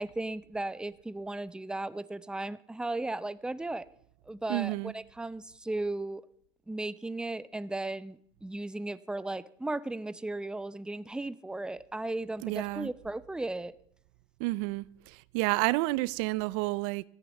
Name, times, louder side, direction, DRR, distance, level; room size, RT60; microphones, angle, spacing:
voice 1, 0.0-3.9 4.3-6.2 6.7-13.7, right 2 dB, 5° right, 0.6 m, -36 dB
voice 2, 4.5-4.9 12.4-12.9 14.4-17.0, right 21 dB, 75° right, 0.5 m, -30 dB
14.0 x 9.6 x 7.1 m
supercardioid pair, 105°, 16 cm